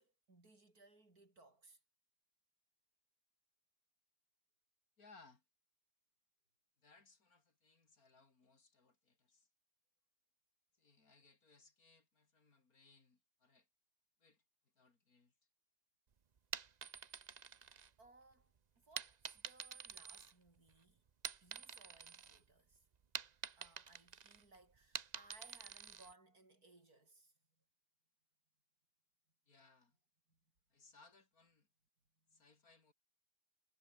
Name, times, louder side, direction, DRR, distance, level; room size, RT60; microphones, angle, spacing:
voice 1, 0.0-1.8 18.0-21.0 21.4-22.9 23.6-27.3 30.3-30.4 32.3-32.4, right 2 dB, 60° right, 5.7 m, -65 dB
voice 2, 5.0-5.4 6.8-9.5 10.8-13.7 14.2-14.4 14.7-15.3 29.5-30.0 30.7-31.7 32.3-32.9, left 3 dB, 60° left, 3.4 m, -67 dB
sound 1, 16.4-18.3 19.0-20.7 21.1-22.4 22.7-26.1, right 6 dB, 45° right, 0.5 m, -48 dB
omnidirectional pair, 1.8 m